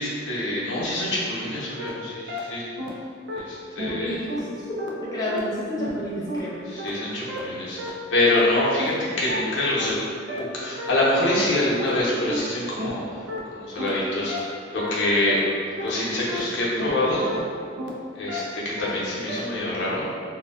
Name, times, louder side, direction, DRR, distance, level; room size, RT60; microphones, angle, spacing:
voice 1, 0.0-2.6 3.3-4.1 6.7-10.0 10.3-13.2 13.5-15.4 15.7-17.3 18.1-20.1, left 1 dB, 70° left, -7 dB, 0.6 m, -25 dB
sound 1, 1.8-1.9 2.3-2.4 2.8-2.9 3.3-3.4 3.8-3.9 4.3-4.4 4.8-4.9 5.3-5.4 5.8-5.9 6.3-6.4 6.8-6.9 7.3-7.4 7.8-7.9 8.3-8.4 8.8-8.9 9.3-9.4 9.8-9.9 10.3-10.4 10.8-10.9 11.3-11.4 11.8-11.9 12.3-12.4 12.8-12.9 13.3-13.4 13.8-13.9 14.3-14.4 14.8-14.9 15.3-15.4 15.8-15.9 16.3-16.4 16.8-16.9 17.3-17.4 17.8-17.9 18.3-18.4 18.8-18.9 19.3-19.4, equal, 65° right, 0.4 m, -32 dB
voice 2, 3.9-6.7, equal, 20° left, -8 dB, 0.3 m, -30 dB
2.5 x 2.1 x 2.3 m, 2.3 s
head